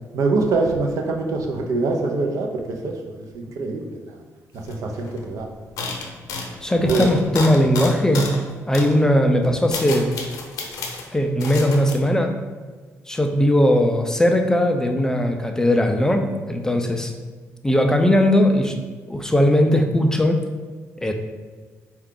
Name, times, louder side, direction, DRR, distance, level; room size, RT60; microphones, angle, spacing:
voice 1, 0.1-4.2 4.5-5.5 6.8-7.1, right 3 dB, 70° right, 2 dB, 0.6 m, -24 dB
sound 1, 4.7-5.3 5.8-8.4 8.7-8.9 9.4-11.1 11.4-11.9, left 3 dB, 90° left, 0.6 m, -30 dB
voice 2, 6.6-8.3 8.7-10.1 11.1-12.3 13.1-17.1 17.6-18.8 19.1-20.4 21.0-21.1, left 1 dB, 10° left, 4 dB, 0.3 m, -19 dB
4.5 x 2.3 x 3.7 m, 1.5 s
cardioid pair, 115°, 6 cm